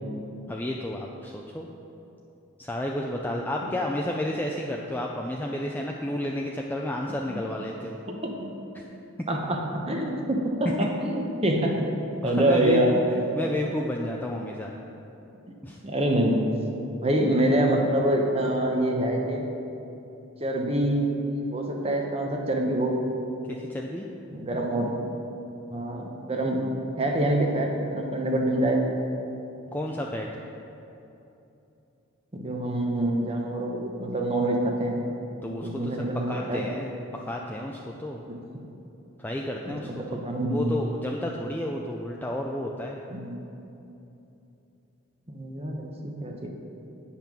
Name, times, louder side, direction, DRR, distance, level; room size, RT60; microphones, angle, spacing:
voice 1, 0.5-1.7 2.6-8.0 8.7-8.8 10.8-10.9 12.2-13.0 13.4-14.8 15.6-15.8 23.5-24.1 29.7-30.3 35.4-38.2 39.2-39.9 40.5-43.0, left 1 dB, 10° left, -1 dB, 0.4 m, -31 dB
voice 2, 8.1-8.5 9.3-9.6 9.9-11.7 12.2-13.0 15.8-16.4 17.0-19.4 20.4-22.9 24.3-24.9 25.7-26.7 27.0-28.8 32.3-35.0 35.6-36.6 38.3-38.4 39.7-40.8 43.1-43.4 45.3-46.5, right 1 dB, 30° right, 1 dB, 0.9 m, -26 dB
8.7 x 5.7 x 6.1 m, 2.9 s
head